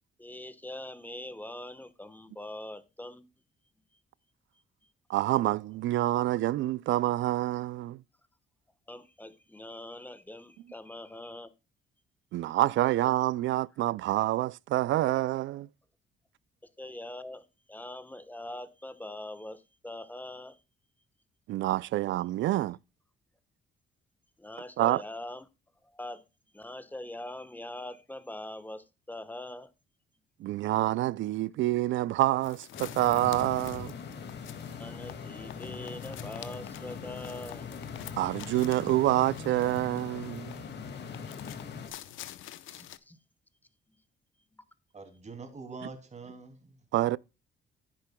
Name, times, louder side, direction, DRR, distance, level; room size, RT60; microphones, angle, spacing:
voice 1, 0.2-3.3 8.9-11.5 16.8-20.6 24.4-25.5 25.8-26.3 26.5-29.7 34.8-37.7 42.7-43.2 44.5-44.6, left 1 dB, 10° left, 1.1 m, -43 dB
voice 2, 5.1-8.0 12.3-15.7 21.5-22.8 24.8-25.0 30.4-33.9 38.2-40.6 46.9-47.2, right 15 dB, 75° right, 0.4 m, -27 dB
sound 1, 32.4-43.0, left 13 dB, 80° left, 0.8 m, -48 dB
sound 2, 32.7-41.9, left 6 dB, 60° left, 2.1 m, -41 dB
voice 3, 44.9-46.9, right 4 dB, 35° right, 2.7 m, -44 dB
10.5 x 9.8 x 2.2 m
cardioid pair, 90°, 20 cm